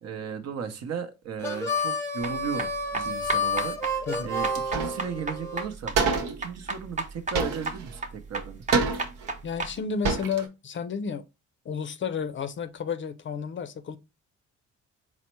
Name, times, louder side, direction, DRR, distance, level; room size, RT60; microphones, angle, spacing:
voice 1, 0.0-9.1, right 7 dB, 55° right, 0.8 m, -36 dB
Harmonica, 1.4-5.7, left 2 dB, 10° left, 0.8 m, -30 dB
sound 1, 2.2-9.7, right 3 dB, 25° right, 0.8 m, -34 dB
sound 2, 4.5-5.1 5.4-5.5 5.9-6.4 7.3-8.0 8.7-9.3 9.8-9.9 10.0-10.5, right 4 dB, 90° right, 0.9 m, -27 dB
voice 2, 9.4-11.2 11.6-14.0, left 6 dB, 40° left, 0.5 m, -32 dB
4.1 x 2.1 x 4.3 m
cardioid pair, 90°, 30 cm